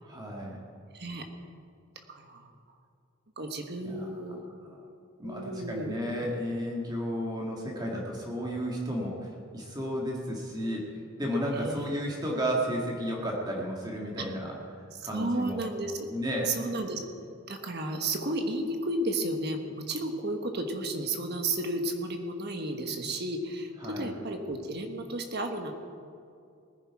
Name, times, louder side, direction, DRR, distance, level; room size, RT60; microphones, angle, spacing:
voice 1, 0.0-0.6 3.8-4.1 5.2-15.6 16.1-16.5 23.8-24.1, equal, 20° right, -2 dB, 1.8 m, -33 dB
voice 2, 0.9-1.3 2.1-2.5 3.4-4.4 5.2-5.9 11.5-11.9 15.0-16.1 16.5-17.0 17.5-25.7, right 2 dB, 45° right, 5 dB, 1.4 m, -33 dB
19.5 x 10.5 x 4.8 m, 2.5 s
head